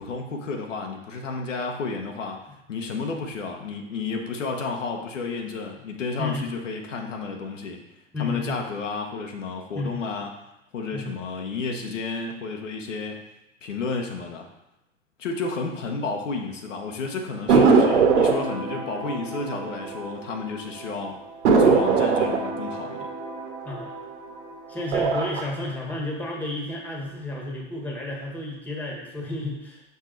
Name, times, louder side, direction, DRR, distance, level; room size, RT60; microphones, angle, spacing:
voice 1, 0.0-2.4 2.7-7.8 8.2-10.3 10.7-13.2 13.6-14.5 15.2-21.1 21.6-23.1, left 4 dB, 85° left, 2 dB, 1.2 m, -31 dB
voice 2, 8.1-8.6 9.7-10.0 10.9-11.2 17.5-17.7 23.6-23.9 24.7-29.8, left 2 dB, 5° left, -1 dB, 1.4 m, -31 dB
sound 1, 17.5-20.5 20.8-20.9 21.4-24.4 24.8-25.4, right 5 dB, 70° right, 1.4 m, -22 dB
5.5 x 5.5 x 3.9 m, 0.87 s
hypercardioid pair, 120°, 36 cm